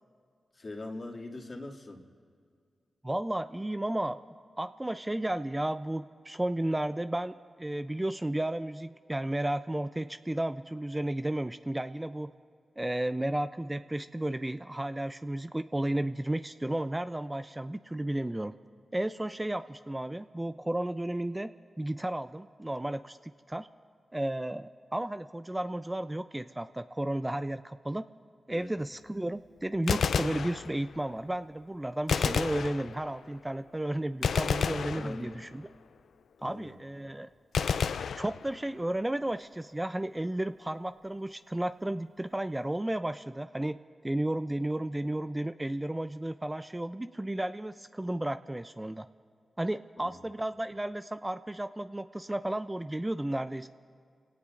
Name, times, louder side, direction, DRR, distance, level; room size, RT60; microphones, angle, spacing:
voice 1, 0.5-2.0 28.5-28.7 34.9-35.4 36.4-36.8 50.0-50.2, left 2 dB, 50° left, 0 dB, 2.4 m, -42 dB
voice 2, 3.0-4.2 4.6-12.3 12.8-18.5 18.9-23.7 24.1-28.1 28.5-35.6 36.4-37.3 38.2-43.8 44.0-49.1 49.6-53.7, right 1 dB, 20° right, 11 dB, 0.5 m, -33 dB
Gunshot gunfire, 29.7-31.1 32.1-33.3 34.2-35.7 37.5-38.9, left 6 dB, 80° left, 0.3 m, -31 dB
27.5 x 18.0 x 2.6 m, 2.1 s
supercardioid pair, 40°, 0 cm